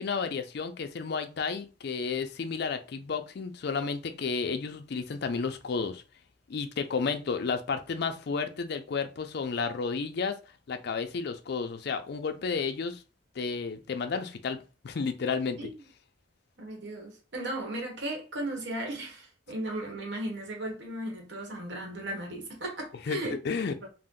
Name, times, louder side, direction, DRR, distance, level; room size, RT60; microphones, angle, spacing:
voice 1, 0.0-6.0 6.5-10.4 10.7-13.0 13.4-15.7 23.1-23.8, left 5 dB, 60° left, 0.4 m, -32 dB
voice 2, 16.6-23.4 23.8-23.9, right 1 dB, 65° right, 1.0 m, -36 dB
2.7 x 2.0 x 3.6 m
head